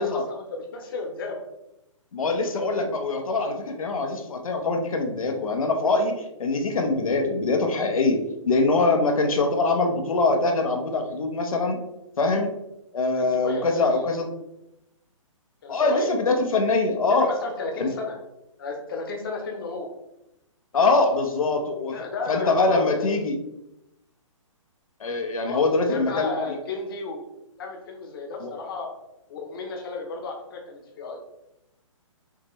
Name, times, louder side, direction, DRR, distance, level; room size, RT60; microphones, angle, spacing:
voice 1, 0.0-1.4 13.2-14.1 15.6-16.1 17.1-18.2 18.6-19.9 20.8-21.2 21.9-23.2 25.4-27.3 27.6-28.9 29.3-31.2, left 3 dB, 45° left, 2 dB, 0.9 m, -33 dB
voice 2, 2.1-8.2 8.4-11.8 12.2-12.5 12.9-14.3 15.7-17.3 17.8-17.9 20.7-21.9 22.3-23.4 25.0-26.3 28.4-28.5, left 3 dB, 90° left, 3 dB, 0.9 m, -23 dB
5.8 x 2.9 x 3.1 m, 0.88 s
hypercardioid pair, 165°, 17 cm